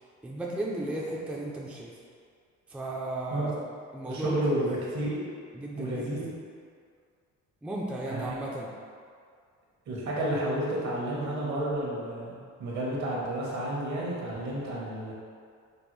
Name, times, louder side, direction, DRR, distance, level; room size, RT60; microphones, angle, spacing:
voice 1, 0.2-1.9 2.7-3.6 3.9-4.4 5.5-6.1 7.6-8.7, right 1 dB, 5° right, -3 dB, 0.4 m, -34 dB
voice 2, 4.0-5.3 5.8-6.2 8.1-8.4 9.9-15.1, right 1 dB, 65° right, -5 dB, 1.2 m, -31 dB
5.3 x 2.1 x 3.1 m, 2.2 s
cardioid pair, 90°, 30 cm